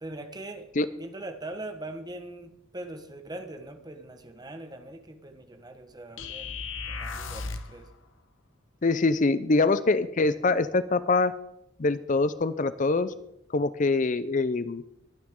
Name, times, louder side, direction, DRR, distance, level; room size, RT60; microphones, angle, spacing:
voice 1, 0.0-6.6 6.9-7.9, right 2 dB, 20° right, 7 dB, 1.3 m, -41 dB
sound 1, 6.2-7.8, left 4 dB, 75° left, 1.2 m, -35 dB
voice 2, 8.8-11.3 11.8-13.1 13.5-14.8, left 3 dB, 40° left, 14 dB, 0.6 m, -24 dB
23.0 x 9.4 x 3.7 m, 0.78 s
head